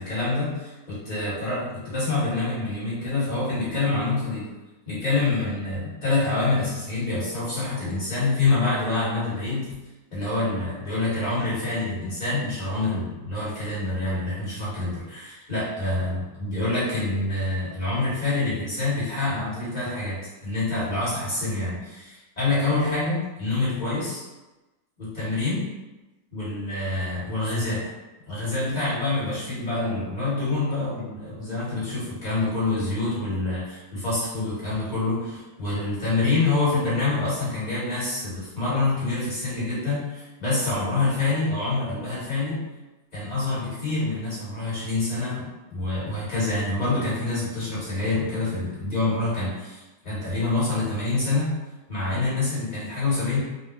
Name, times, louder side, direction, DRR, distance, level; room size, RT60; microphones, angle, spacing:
voice 1, 0.0-4.5 4.9-9.7 10.1-24.2 25.0-25.6 26.3-27.8 28.3-42.6 43.1-51.5 51.9-53.4, left 3 dB, 30° left, -10 dB, 1.5 m, -26 dB
3.6 x 2.1 x 3.0 m, 1.1 s
omnidirectional pair, 1.4 m